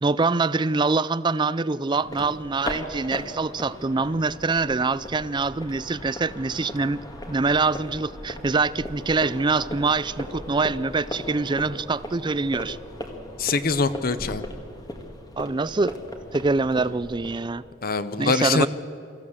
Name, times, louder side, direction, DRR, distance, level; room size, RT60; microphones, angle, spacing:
voice 1, 0.0-7.0 7.3-12.8 15.4-16.0 16.3-17.6 18.2-18.7, right 3 dB, 25° right, 17 dB, 0.4 m, -24 dB
sound 1, 1.9-17.5, left 1 dB, 20° left, 1.9 m, -38 dB
voice 2, 13.4-14.4 17.8-18.7, left 4 dB, 50° left, 13 dB, 0.8 m, -23 dB
25.0 x 15.0 x 7.3 m, 2.7 s
head